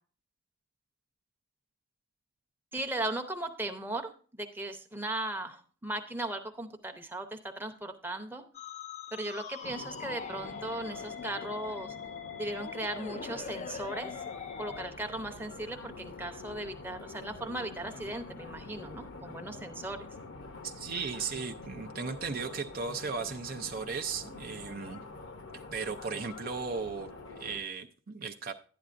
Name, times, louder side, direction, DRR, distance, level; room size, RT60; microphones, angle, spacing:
voice 1, 2.7-8.4 9.1-11.9 12.4-14.1 14.6-20.1, right 2 dB, 10° right, 5 dB, 0.7 m, -37 dB
Musical instrument, 8.5-14.9, left 7 dB, 35° left, 0.4 m, -43 dB
sound 1, 9.6-27.6, left 3 dB, 60° left, 0.8 m, -46 dB
voice 2, 20.6-25.0 25.5-28.5, right 5 dB, 45° right, 5 dB, 0.5 m, -36 dB
11.5 x 9.4 x 2.5 m, 0.40 s
head